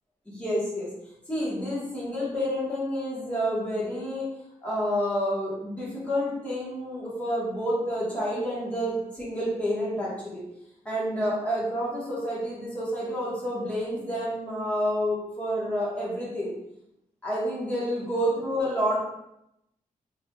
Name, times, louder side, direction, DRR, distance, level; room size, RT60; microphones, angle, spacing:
voice 1, 0.3-0.9 1.3-4.3 4.6-10.4 10.8-16.5 17.2-19.0, equal, 10° left, -7 dB, 1.3 m, -29 dB
4.4 x 3.1 x 2.3 m, 0.82 s
wide cardioid pair, 145°, 14 cm